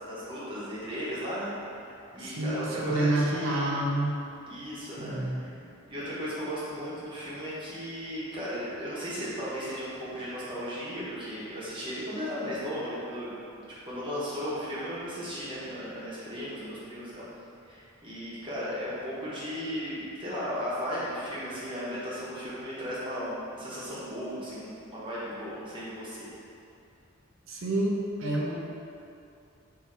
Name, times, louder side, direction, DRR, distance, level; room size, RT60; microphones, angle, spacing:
voice 1, 0.1-3.6 4.5-5.5 5.9-17.2 17.6-26.3, equal, 25° right, -9 dB, 0.9 m, -36 dB
voice 2, 2.2-4.1 5.0-5.4 27.5-28.6, right 1 dB, 65° right, -3 dB, 0.6 m, -28 dB
3.8 x 2.7 x 4.2 m, 2.6 s
head